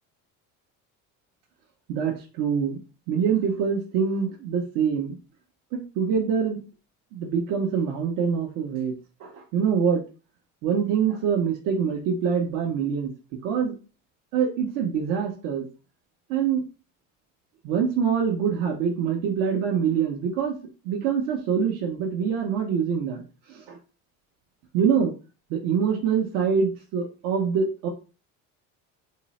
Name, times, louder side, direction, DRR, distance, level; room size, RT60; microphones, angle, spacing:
voice 1, 1.9-2.8 3.1-5.2 5.7-6.6 7.1-8.9 9.2-10.0 10.6-13.1 13.4-13.7 14.3-15.7 16.3-16.6 17.6-20.6 20.8-23.8 24.7-25.1 25.5-27.9, right 7 dB, 70° right, -1 dB, 0.8 m, -25 dB
3.7 x 2.0 x 4.1 m, 0.34 s
cardioid pair, 170°, 33 cm